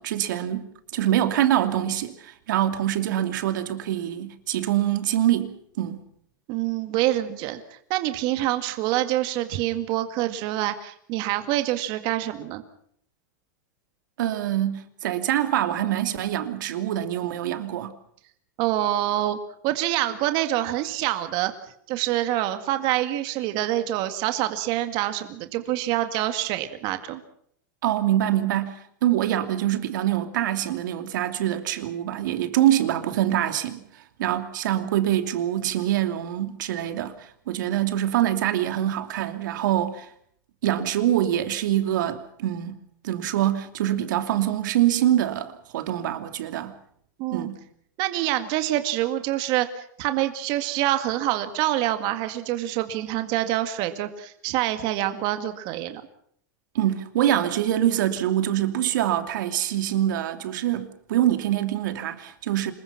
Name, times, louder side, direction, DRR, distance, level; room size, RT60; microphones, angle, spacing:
voice 1, 0.0-6.0 14.2-17.9 27.8-40.1 40.6-42.8 43.0-46.7 47.3-47.6 56.7-62.7, right 12 dB, 75° right, 2.8 m, -25 dB
voice 2, 6.5-12.6 18.6-19.4 19.6-21.5 21.9-27.2 47.2-47.5 48.0-56.0, right 14 dB, 45° right, 2.0 m, -26 dB
26.5 x 22.0 x 5.9 m
supercardioid pair, 140°, 10 cm